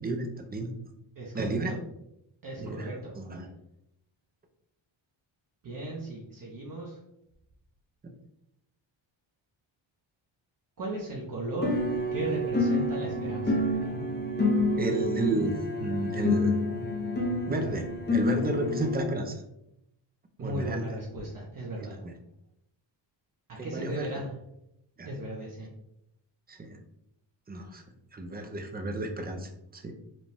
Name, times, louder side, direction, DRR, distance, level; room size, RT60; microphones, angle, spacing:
voice 1, 0.0-0.7 1.3-1.7 2.6-3.5 14.8-15.5 15.8-16.6 17.5-19.4 20.4-20.8 21.8-22.1 23.6-24.1 25.0-25.1 26.5-26.8 27.5-27.8 28.1-29.9, right 2 dB, 20° right, 4 dB, 0.5 m, -32 dB
voice 2, 2.4-3.1 5.6-7.0 10.8-11.8 12.1-13.6 20.4-22.0 23.6-24.3 25.1-25.7, right 1 dB, 40° right, -3 dB, 0.8 m, -36 dB
sound 1, 11.6-19.0, left 2 dB, 20° left, 0.6 m, -28 dB
5.1 x 2.3 x 3.4 m, 0.82 s
wide cardioid pair, 150°, 49 cm